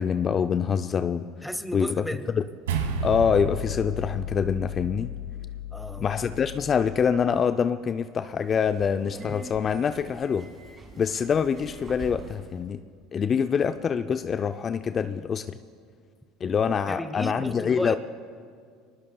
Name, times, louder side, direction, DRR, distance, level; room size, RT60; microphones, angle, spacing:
voice 1, 0.0-1.3 1.7-1.9 2.3-2.4 3.0-5.1 6.0-10.5 11.0-12.8 13.1-15.6 16.4-17.9, left 7 dB, 35° left, 10 dB, 0.5 m, -25 dB
voice 2, 1.4-2.3 5.7-6.1 16.4-16.6 16.9-18.0, equal, ahead, 12 dB, 0.9 m, -33 dB
sound 1, 2.7-7.2, equal, 80° right, 1.4 m, -33 dB
Subway metro underground, 8.3-12.6, right 2 dB, 30° right, 3.2 m, -44 dB
25.0 x 19.5 x 2.3 m, 2.1 s
hypercardioid pair, 75°, 0 cm